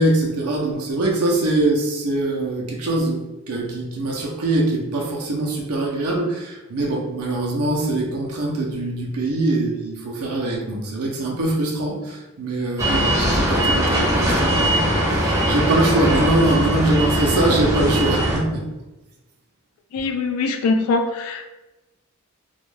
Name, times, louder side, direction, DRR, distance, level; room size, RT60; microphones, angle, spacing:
voice 1, 0.0-3.2 3.5-18.6, right 2 dB, 90° right, -1 dB, 0.5 m, -23 dB
sound 1, 12.8-18.4, right 1 dB, 15° right, 0.6 m, -20 dB
voice 2, 19.9-21.5, left 3 dB, 80° left, 6 dB, 0.3 m, -22 dB
2.3 x 2.1 x 3.1 m, 1.0 s
head